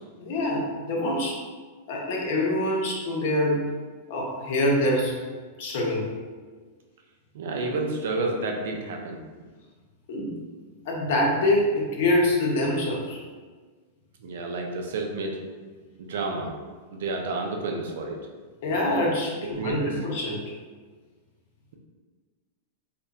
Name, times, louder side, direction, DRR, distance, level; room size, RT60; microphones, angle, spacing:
voice 1, 0.1-1.4 1.9-3.6 4.1-5.2 5.6-6.1 10.1-10.3 10.9-13.2 18.6-20.4, left 1 dB, 65° left, -2 dB, 0.6 m, -25 dB
voice 2, 7.3-9.2 14.2-15.4 16.0-16.5 16.9-18.2 19.6-19.9, right 3 dB, 75° right, 2 dB, 0.4 m, -30 dB
2.6 x 2.1 x 2.3 m, 1.4 s
hypercardioid pair, 110°, 0 cm